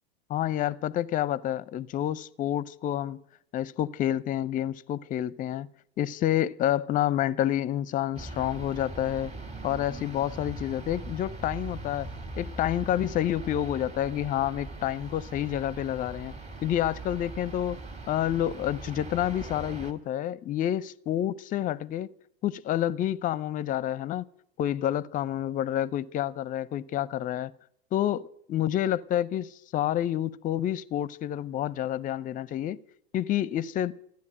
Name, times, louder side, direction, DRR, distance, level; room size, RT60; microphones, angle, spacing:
voice 1, 0.3-3.2 3.5-5.7 6.0-9.3 9.6-12.1 12.4-16.3 16.6-17.8 18.1-22.1 22.4-24.2 24.6-27.5 27.9-32.8 33.1-34.0, left 12 dB, 25° left, 0.5 m, -29 dB
sound 1, 8.1-19.9, right 2 dB, 20° right, 2.0 m, -40 dB
14.5 x 10.5 x 8.6 m
hypercardioid pair, 100°, 31 cm